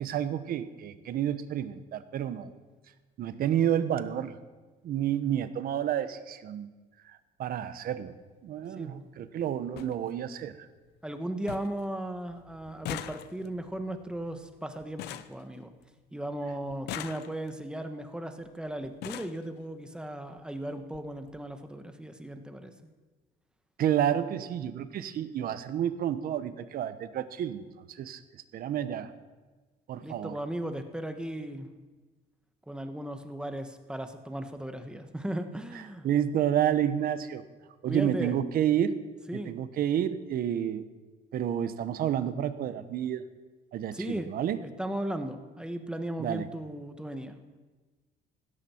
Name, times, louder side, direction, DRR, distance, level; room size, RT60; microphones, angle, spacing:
voice 1, 0.0-2.5 3.2-4.3 4.8-6.7 7.0-8.1 8.4-10.6 23.8-28.2 28.5-29.1 29.9-30.3 36.0-37.4 37.8-38.9 39.3-40.9 41.3-43.2 43.7-44.6 46.2-46.5, right 10 dB, 60° right, 12 dB, 1.0 m, -30 dB
sound 1, 7.6-7.8 9.1-9.2 9.4-9.5 9.8-9.9 10.4-10.9 11.1-11.2 11.5-11.9 12.1-16.1 16.7-17.7 18.5-18.6 18.8-19.4 20.4-20.5 20.8-21.0 21.3-21.4, left 12 dB, 80° left, 0.7 m, -42 dB
voice 2, 11.0-15.0 15.3-15.7 16.1-22.7 30.0-31.7 32.7-36.1 37.9-38.4 39.3-39.6 43.9-44.3 44.6-47.6, right 1 dB, 5° right, 7 dB, 1.3 m, -36 dB
16.0 x 13.0 x 4.5 m, 1.3 s
cardioid pair, 110°, 17 cm